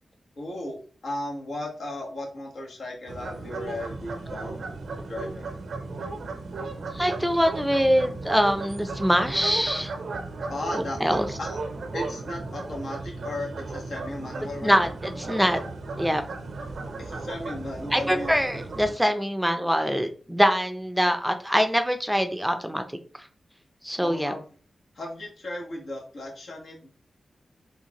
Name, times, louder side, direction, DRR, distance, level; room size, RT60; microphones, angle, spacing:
voice 1, 0.4-0.8 1.0-4.7 5.1-5.5 10.5-11.6 11.9-14.8 17.0-18.3 24.0-24.4 24.9-26.9, left 1 dB, 75° left, -2 dB, 1.3 m, -35 dB
sound 1, 3.1-18.9, right 3 dB, 80° right, 0.6 m, -35 dB
voice 2, 6.9-9.9 10.7-11.3 14.6-15.6 16.0-16.2 17.9-23.0 23.8-24.3, equal, 5° right, 7 dB, 0.5 m, -24 dB
3.5 x 2.5 x 2.9 m, 0.40 s
cardioid pair, 40°, 0 cm